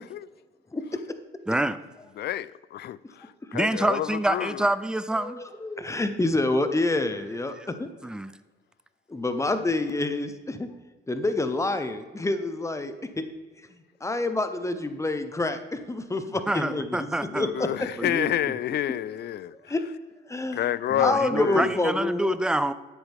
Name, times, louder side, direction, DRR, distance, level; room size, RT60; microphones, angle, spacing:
voice 1, 1.5-1.8 3.5-5.4 8.0-8.3 16.5-17.5 18.0-18.4 20.9-22.7, right 1 dB, 5° right, 0.4 m, -27 dB
voice 2, 2.2-4.7 17.3-19.5 20.5-21.7, left 12 dB, 55° left, 0.4 m, -29 dB
voice 3, 5.2-7.9 9.1-10.7 11.1-13.2 13.7-17.7 18.0-18.2 19.7-19.8 20.3-20.6 21.0-22.4, left 2 dB, 15° left, 0.9 m, -28 dB
10.5 x 8.0 x 3.6 m
cardioid pair, 90°, 20 cm